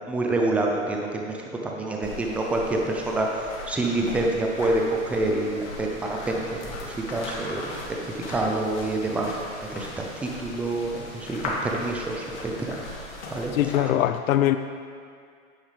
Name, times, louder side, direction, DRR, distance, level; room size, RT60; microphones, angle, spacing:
voice 1, 0.1-9.3 9.7-12.8 13.3-13.5, right 2 dB, 5° right, 0 dB, 0.4 m, -27 dB
sound 1, 2.0-13.8, left 2 dB, 60° left, 2.6 m, -38 dB
voice 2, 13.5-14.6, left 12 dB, 80° left, 10 dB, 0.5 m, -22 dB
9.9 x 9.3 x 3.3 m, 2.2 s
hypercardioid pair, 130°, 41 cm